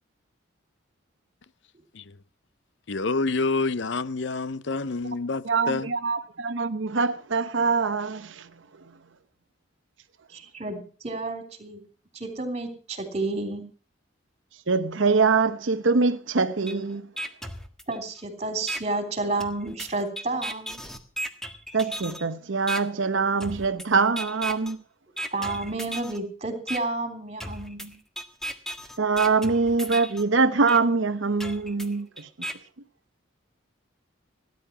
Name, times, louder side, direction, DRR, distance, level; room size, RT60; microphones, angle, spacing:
voice 1, 2.9-5.9, left 3 dB, 60° left, 0.6 m, -27 dB
voice 2, 5.4-8.5 14.7-17.1 21.7-24.8 29.0-32.3, right 4 dB, 70° right, 0.9 m, -24 dB
voice 3, 10.3-11.8 12.1-13.6 17.9-20.8 25.3-27.9, right 2 dB, 30° right, 3.5 m, -31 dB
sound 1, 16.7-16.8 17.2-18.2 18.7-18.8 19.4-22.2 22.7-22.8 23.4-23.9 24.2-24.7 25.2-26.2 26.7-26.8 27.4-30.2 30.7-30.8 31.4-32.5, right 1 dB, ahead, 1.5 m, -35 dB
17.5 x 10.5 x 5.9 m
head